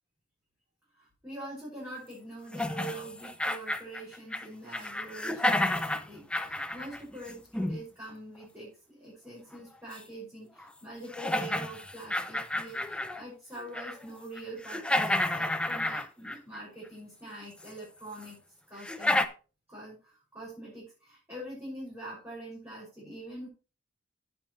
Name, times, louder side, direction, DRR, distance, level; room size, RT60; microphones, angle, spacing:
voice 1, 1.0-18.4 18.7-19.3 19.7-23.5, right 1 dB, 15° right, -8 dB, 6.3 m, -44 dB
sound 1, 2.5-4.5 4.7-7.8 9.9-10.0 10.6-10.7 11.1-13.2 13.6-14.0 14.4-16.6 17.6-17.7 18.2-18.3 18.8-19.3, left 1 dB, 5° left, 0.7 m, -31 dB
11.0 x 9.1 x 3.2 m, 0.34 s
head